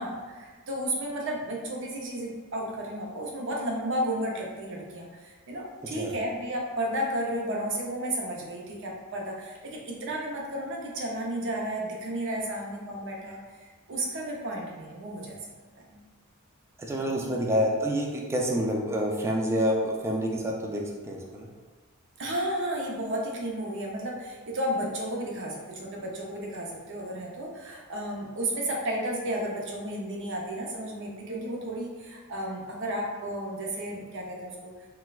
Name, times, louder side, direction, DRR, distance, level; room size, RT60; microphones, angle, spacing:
voice 1, 0.0-15.4 15.8-16.0 17.0-17.2 22.2-34.7, right 1 dB, 60° right, -1 dB, 0.6 m, -33 dB
voice 2, 5.8-6.1 16.8-21.5, equal, 10° right, -1 dB, 0.3 m, -28 dB
4.1 x 2.2 x 2.3 m, 1.4 s
head